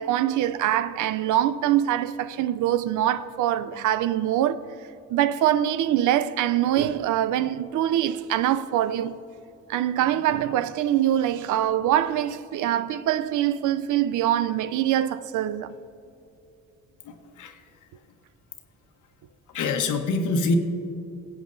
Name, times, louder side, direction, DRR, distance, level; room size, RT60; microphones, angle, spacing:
voice 1, 0.0-4.6 5.1-9.2 9.7-15.8, right 11 dB, 80° right, 0.5 m, -24 dB
voice 2, 17.0-17.6 19.5-20.6, left 3 dB, 75° left, 1.1 m, -25 dB
22.0 x 8.1 x 2.6 m
cardioid pair, 90°, 30 cm